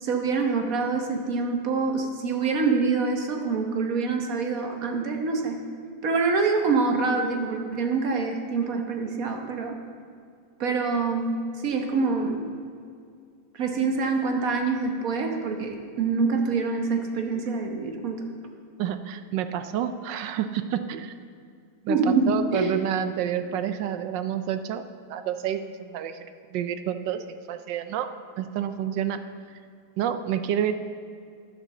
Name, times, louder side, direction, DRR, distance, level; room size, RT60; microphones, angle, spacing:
voice 1, 0.0-5.6 6.0-9.7 10.6-11.3 11.6-12.5 13.5-18.3 21.9-22.7, right 4 dB, 50° right, 3 dB, 1.4 m, -25 dB
voice 2, 18.8-21.1 21.8-24.8 25.1-26.3 26.5-28.1 28.4-29.2 30.0-30.7, right 9 dB, 70° right, 10 dB, 1.2 m, -29 dB
11.0 x 7.1 x 6.8 m, 2.3 s
omnidirectional pair, 2.2 m